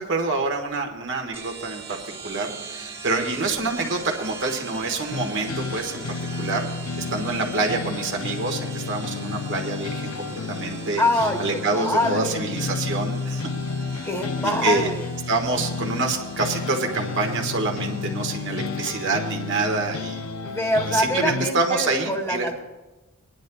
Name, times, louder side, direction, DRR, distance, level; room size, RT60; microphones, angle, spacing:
voice 1, 0.0-2.0 2.2-6.0 6.4-6.7 7.0-11.0 11.4-13.5 13.9-14.1 14.6-14.9 15.3-20.2 20.9-22.5, right 3 dB, 60° right, 2 dB, 1.5 m, -26 dB
sound 1, 1.3-20.5, right 4 dB, 25° right, 1.4 m, -42 dB
sound 2, 5.1-21.5, left 4 dB, 75° left, 0.6 m, -31 dB
voice 2, 11.0-11.4 11.7-12.5 14.0-15.1 20.4-22.6, left 1 dB, 15° left, 2 dB, 1.2 m, -24 dB
21.5 x 10.5 x 2.3 m, 1.1 s
head